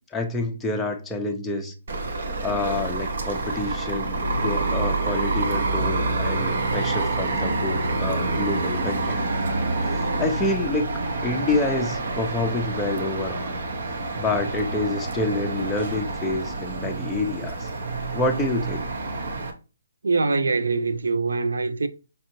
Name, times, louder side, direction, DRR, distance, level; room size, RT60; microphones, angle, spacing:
voice 1, 0.1-1.7 2.4-9.3 9.9-13.5 14.2-17.7 18.1-18.8, left 2 dB, 5° left, 0.5 m, -28 dB
sound 1, 1.9-19.5, right 2 dB, 60° right, 0.8 m, -27 dB
voice 2, 20.0-21.9, right 3 dB, 85° right, 0.4 m, -23 dB
5.2 x 2.6 x 2.9 m
hypercardioid pair, 160°, 0 cm